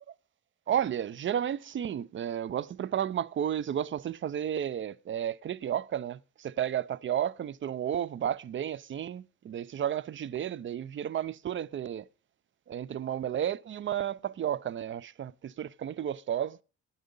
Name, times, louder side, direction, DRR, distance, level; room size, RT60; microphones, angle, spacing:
voice 1, 0.7-12.1 12.7-16.6, right 10 dB, 40° right, 0.5 m, -32 dB
12.5 x 9.5 x 5.3 m
cardioid pair, 90°, 30 cm